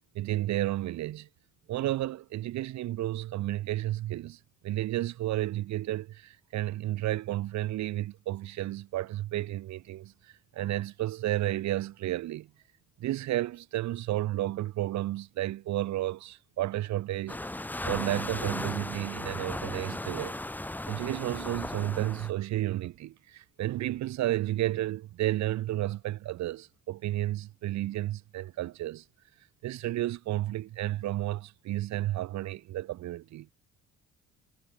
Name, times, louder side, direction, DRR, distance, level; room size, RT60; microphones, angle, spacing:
voice 1, 0.1-1.3 1.7-12.5 13.0-17.4 17.8-20.4 20.9-29.0 29.6-33.5, right 15 dB, 65° right, 0.6 m, -32 dB
sound 1, 17.3-22.3, left 1 dB, 5° left, 0.7 m, -36 dB
cardioid pair, 90°, 30 cm